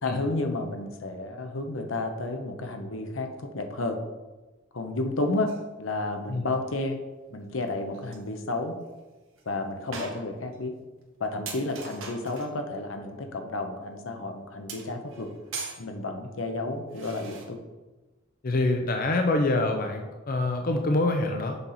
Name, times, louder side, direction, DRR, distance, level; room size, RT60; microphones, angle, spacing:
voice 1, 0.0-4.0 4.7-5.5 5.8-7.0 7.3-8.8 9.5-10.7 11.2-15.3 15.8-17.6, left 2 dB, 80° left, 5 dB, 0.9 m, -31 dB
sound 1, 5.5-5.6 7.7-7.8 7.9-8.3 8.8-8.9 9.4-9.5 9.9-10.6 11.0-11.1 11.5-12.6 14.7-15.8 16.9-17.5, right 4 dB, 85° right, 1.4 m, -40 dB
voice 2, 18.4-21.6, left 2 dB, 45° left, 4 dB, 0.6 m, -25 dB
7.0 x 5.7 x 4.0 m, 1.2 s
head